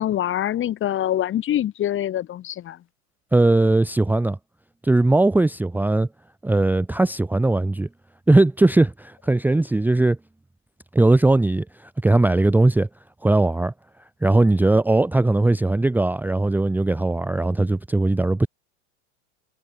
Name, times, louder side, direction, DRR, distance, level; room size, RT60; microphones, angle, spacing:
voice 1, 0.0-2.8, left 12 dB, 30° left, 2.4 m, -24 dB
voice 2, 3.3-4.4 4.8-6.1 6.4-7.9 8.3-10.2 10.9-12.9 13.2-13.7 14.2-18.5, right 2 dB, 5° right, 1.0 m, -19 dB
supercardioid pair, 135°, 40 cm